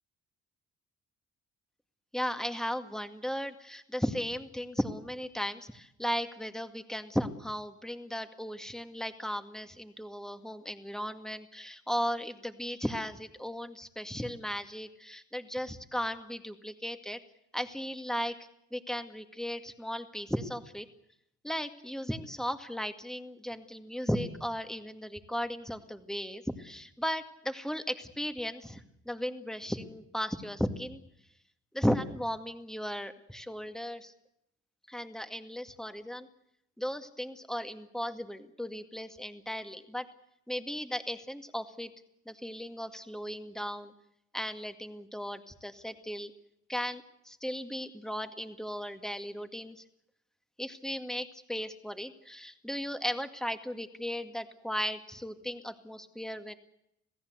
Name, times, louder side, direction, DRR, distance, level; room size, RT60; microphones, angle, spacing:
voice 1, 2.1-17.2 17.5-18.4 18.7-20.9 21.4-31.0 31.7-34.1 34.9-36.3 36.8-40.1 40.5-41.9 42.3-43.9 44.3-46.3 46.7-49.8 50.6-56.5, equal, ahead, 7 dB, 2.1 m, -36 dB
27.0 x 16.5 x 8.2 m, 0.79 s
cardioid pair, 90°, 30 cm